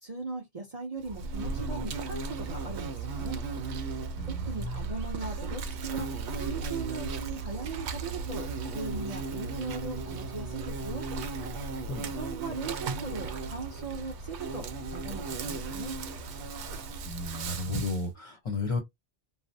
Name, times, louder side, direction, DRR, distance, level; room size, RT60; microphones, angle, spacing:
voice 1, 0.0-3.4 4.2-6.1 6.4-11.0 12.0-14.7 14.9-15.9, right 4 dB, 40° right, 0.7 m, -39 dB
Insect, 1.0-18.1, right 4 dB, 75° right, 0.9 m, -36 dB
voice 2, 4.2-4.8 11.9-12.2 17.0-18.8, left 3 dB, 35° left, 0.7 m, -33 dB
3.2 x 2.0 x 2.6 m
omnidirectional pair, 1.2 m